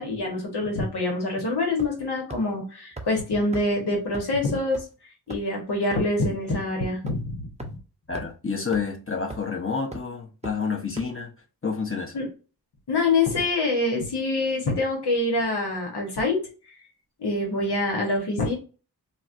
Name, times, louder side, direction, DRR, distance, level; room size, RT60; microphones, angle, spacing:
voice 1, 0.0-7.7 12.1-12.3 12.9-16.8 17.2-18.5, left 2 dB, 80° left, 1.1 m, -26 dB
sound 1, 1.8-2.0 2.3-2.4 3.0-3.1 3.5-3.6 4.1-4.2 4.7-4.8 5.3-5.5 5.9-6.0 6.5-6.6 7.1-7.2 7.6-7.7 8.1-8.3 8.7-8.8 9.3-9.5 9.9-10.0 10.4-10.5 11.0-11.1, right 2 dB, 15° right, 0.7 m, -36 dB
voice 2, 8.1-11.3 11.6-12.1, left 5 dB, 35° left, 0.9 m, -29 dB
4.0 x 2.1 x 2.5 m
cardioid pair, 60°, 39 cm